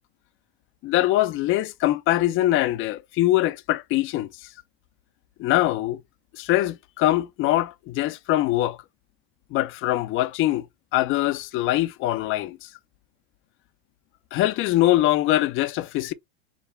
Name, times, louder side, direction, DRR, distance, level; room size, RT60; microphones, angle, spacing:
voice 1, 0.8-4.3 5.4-6.0 6.3-8.8 9.5-10.6 10.9-12.7 14.3-16.1, left 15 dB, 40° left, 0.6 m, -23 dB
4.8 x 2.1 x 3.2 m
hypercardioid pair, 105°, 32 cm